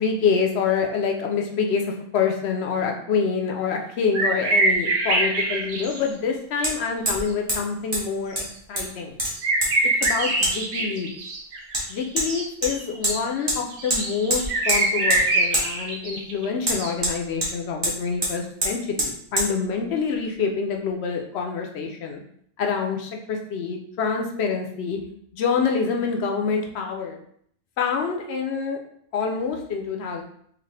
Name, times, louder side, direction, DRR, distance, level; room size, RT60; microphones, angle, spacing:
voice 1, 0.0-1.9 2.1-9.2 10.0-11.1 11.9-22.2 22.6-25.0 25.3-27.2 27.8-28.8 29.1-30.2, left 5 dB, 75° left, 2 dB, 0.8 m, -26 dB
sound 1, 4.1-6.1 8.4-8.5 9.4-16.5 16.7-16.9, right 2 dB, 90° right, 1.0 m, -24 dB
Hammer, 4.7-4.8 6.6-6.7 7.1-7.2 7.5-7.6 7.9-8.0 8.4-8.9 9.2-9.7 10.0-10.1 10.4-10.5 11.7-11.8 12.2-12.3 12.6-13.2 13.5-13.6 13.9-14.0 14.3-14.8 15.1-15.2 15.5-15.7 16.6-17.5 17.8-18.0 18.2-18.3 18.6-18.7 19.0-19.1 19.4-19.5, right 1 dB, 25° right, 1.0 m, -24 dB
3.8 x 2.4 x 3.2 m, 0.66 s
omnidirectional pair, 1.1 m